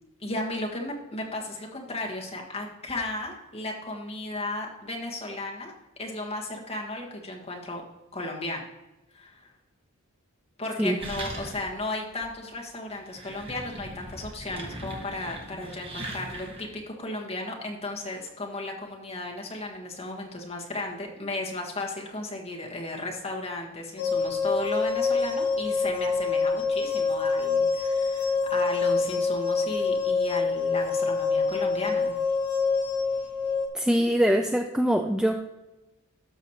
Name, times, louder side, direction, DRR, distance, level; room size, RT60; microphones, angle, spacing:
voice 1, 0.2-5.7 6.0-7.8 8.1-8.6 9.1-9.5 10.6-32.1, left 2 dB, 30° left, 0 dB, 1.4 m, -35 dB
sound 1, 11.0-11.8 12.2-12.3 12.9-16.7, right 1 dB, 25° right, 1.1 m, -39 dB
sound 2, 24.0-33.7, left 4 dB, 75° left, 1.1 m, -26 dB
voice 2, 33.7-35.4, equal, 5° right, 4 dB, 0.3 m, -23 dB
12.0 x 6.1 x 2.9 m, 1.0 s
head